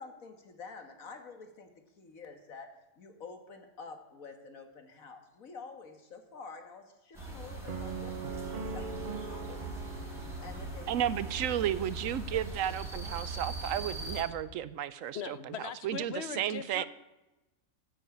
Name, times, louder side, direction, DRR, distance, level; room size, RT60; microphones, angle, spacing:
voice 1, 0.0-9.8 10.1-10.9, left 4 dB, 80° left, 6 dB, 2.0 m, -49 dB
sound 1, 7.1-14.2, right 2 dB, ahead, 4.4 m, -40 dB
sound 2, 7.7-11.8, right 5 dB, 45° right, 0.9 m, -42 dB
voice 2, 10.9-15.5 15.8-16.9, right 10 dB, 75° right, 16 dB, 1.0 m, -33 dB
voice 3, 15.1-16.9, left 7 dB, 55° left, 13 dB, 1.0 m, -40 dB
14.0 x 7.2 x 8.4 m, 1.0 s
omnidirectional pair, 1.4 m